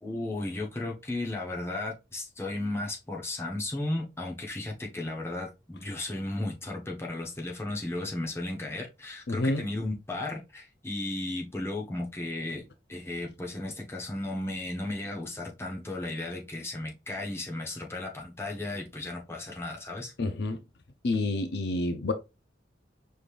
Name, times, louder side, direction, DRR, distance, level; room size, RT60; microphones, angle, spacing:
voice 1, 0.0-20.1, left 2 dB, 15° left, 1.0 m, -35 dB
voice 2, 9.3-9.6 20.2-20.6 21.0-22.1, left 2 dB, 60° left, 0.5 m, -28 dB
5.2 x 3.3 x 2.4 m
head